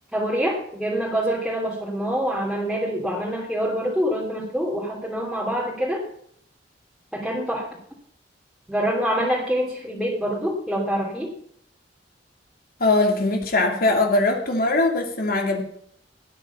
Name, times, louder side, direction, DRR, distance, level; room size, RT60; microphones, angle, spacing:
voice 1, 0.1-6.0 7.1-7.8 8.7-11.4, equal, ahead, -5 dB, 2.9 m, -25 dB
voice 2, 12.8-15.6, left 2 dB, 55° left, 2 dB, 2.9 m, -21 dB
18.0 x 9.8 x 5.7 m, 0.67 s
head